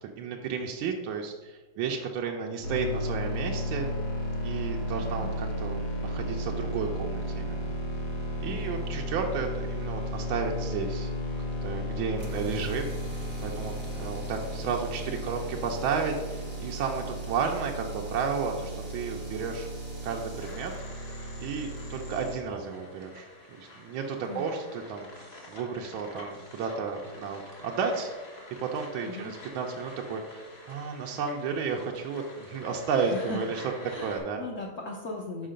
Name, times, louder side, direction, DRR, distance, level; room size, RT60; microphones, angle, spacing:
voice 1, 0.2-3.9 4.4-7.7 8.4-11.1 11.6-19.7 20.0-20.7 21.4-28.1 28.6-33.6 34.0-34.4, right 5 dB, 75° right, 1 dB, 1.4 m, -33 dB
sound 1, 2.6-22.3, equal, 50° left, 1.8 m, -34 dB
voice 2, 8.4-8.9 24.3-24.5 29.0-29.3 33.0-33.4 33.8-35.5, left 2 dB, 80° left, -1 dB, 0.7 m, -38 dB
sound 2, 12.1-22.2, right 4 dB, 45° right, 0.5 m, -47 dB
sound 3, 20.4-34.2, left 1 dB, 30° left, 1.4 m, -48 dB
5.6 x 5.5 x 5.0 m, 1.3 s
omnidirectional pair, 2.4 m